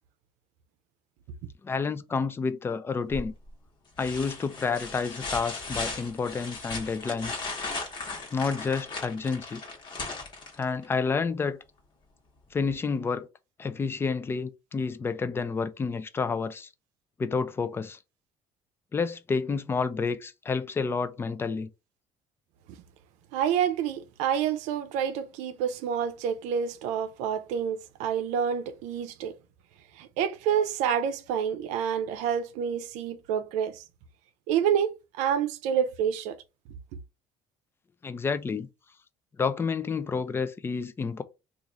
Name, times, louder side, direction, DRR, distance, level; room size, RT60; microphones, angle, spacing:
voice 1, 1.6-3.3 4.0-7.4 8.3-9.6 10.6-11.6 12.5-13.3 13.6-16.7 17.2-18.0 18.9-21.7 38.0-38.7 39.4-41.2, left 5 dB, 20° left, 0.4 m, -29 dB
sound 1, 3.1-3.5 4.0-10.9 12.7-12.8, left 3 dB, 40° left, 1.1 m, -37 dB
voice 2, 23.3-29.3 30.0-33.8 34.5-36.4, right 8 dB, 85° right, 0.5 m, -28 dB
3.0 x 2.5 x 3.9 m
cardioid pair, 120°, 12 cm